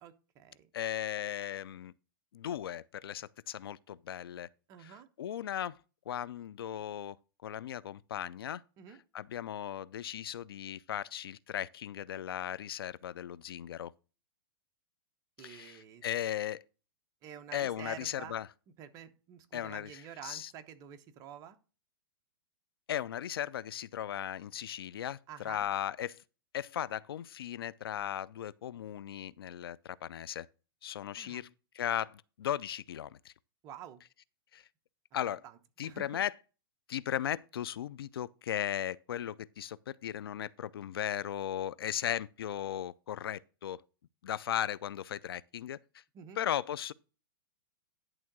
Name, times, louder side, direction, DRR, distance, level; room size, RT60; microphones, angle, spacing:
voice 1, 0.0-0.7 4.7-5.1 8.8-9.0 15.4-16.1 17.2-18.4 18.8-21.6 25.3-25.6 31.2-31.5 33.6-34.0 35.4-35.5 35.8-36.2 46.1-46.4, right 9 dB, 30° right, 1.0 m, -49 dB
voice 2, 0.7-1.9 2.3-4.5 4.8-5.8 6.1-7.2 7.4-8.6 8.9-13.9 15.4-16.6 17.5-18.5 19.5-20.5 22.9-26.2 26.5-30.5 30.8-33.3 34.5-34.6 35.1-35.4 35.8-36.3 36.9-43.8 44.2-45.8 46.4-46.9, left 10 dB, 85° left, 0.5 m, -37 dB
11.0 x 3.7 x 6.0 m
hypercardioid pair, 150°, 12 cm